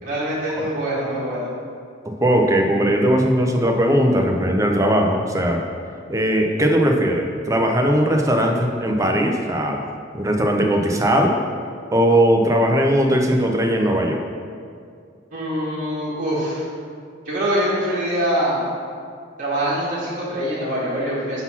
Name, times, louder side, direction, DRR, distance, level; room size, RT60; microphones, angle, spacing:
voice 1, 0.0-1.5 15.3-16.7 17.2-18.6 19.4-21.4, equal, 45° right, -8 dB, 1.6 m, -24 dB
voice 2, 2.2-5.6 6.1-9.8 10.1-11.3 11.9-14.2, equal, 15° right, 2 dB, 0.6 m, -19 dB
5.8 x 4.0 x 5.7 m, 2.3 s
head